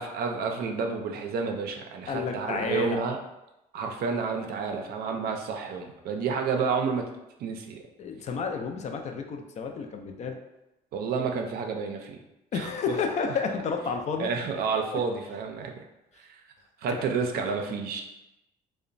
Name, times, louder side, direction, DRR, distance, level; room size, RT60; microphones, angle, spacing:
voice 1, 0.0-3.2 3.7-7.1 7.4-7.8 10.9-12.2 12.5-12.7 14.2-15.8 16.2-16.4 16.8-18.0, right 5 dB, 65° right, 3 dB, 0.4 m, -30 dB
voice 2, 2.1-3.0 8.0-10.4 12.5-14.3 16.9-17.0, left 5 dB, 45° left, 4 dB, 0.4 m, -31 dB
2.8 x 2.1 x 2.5 m, 0.92 s
cardioid pair, 110°, 17 cm